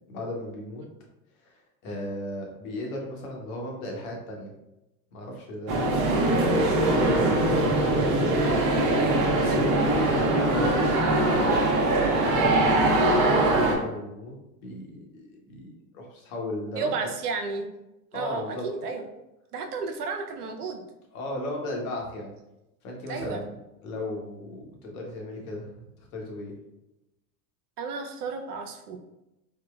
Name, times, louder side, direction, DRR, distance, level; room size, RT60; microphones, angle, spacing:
voice 1, 0.1-0.8 1.4-4.5 5.1-6.5 6.8-8.7 9.0-11.6 12.2-16.9 18.1-18.6 21.1-22.3 22.8-25.9 26.1-26.5, left 1 dB, 65° left, 0 dB, 1.0 m, -36 dB
sound 1, 5.7-13.8, right 2 dB, 40° right, 0.7 m, -22 dB
voice 2, 16.8-17.7 18.1-19.0 19.5-20.8 23.1-23.4 27.8-29.0, right 4 dB, 85° right, 5 dB, 0.5 m, -32 dB
3.7 x 2.1 x 2.3 m, 0.93 s
hypercardioid pair, 80°, 45 cm